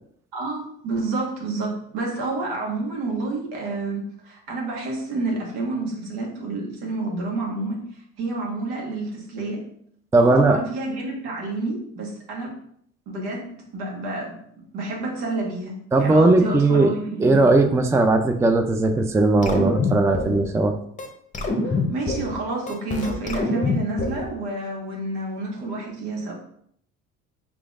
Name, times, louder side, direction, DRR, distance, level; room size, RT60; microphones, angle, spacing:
voice 1, 0.3-7.8 8.2-9.6 10.2-12.6 13.1-14.4 14.7-17.4 21.6-26.3, right 2 dB, 75° right, -1 dB, 1.5 m, -29 dB
voice 2, 10.1-10.6 15.9-16.9 17.2-20.8, right 2 dB, 10° right, 6 dB, 0.4 m, -18 dB
sound 1, 19.4-20.4 21.0-21.1 21.3-22.4 22.7-24.3, left 3 dB, 20° left, 0.9 m, -25 dB
5.0 x 3.4 x 2.5 m, 0.67 s
hypercardioid pair, 70°, 37 cm